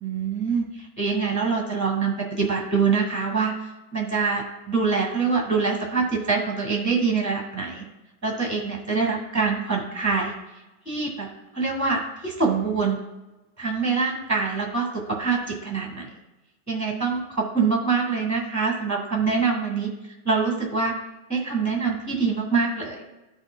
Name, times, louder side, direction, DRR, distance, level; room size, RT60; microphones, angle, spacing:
voice 1, 0.0-3.5 3.9-7.8 8.2-10.3 10.8-11.3 11.5-13.0 13.6-16.1 16.7-19.9 20.2-20.9 21.3-23.0, right 4 dB, 10° right, 1 dB, 1.5 m, -25 dB
14.5 x 5.3 x 2.2 m, 1.0 s
omnidirectional pair, 1.9 m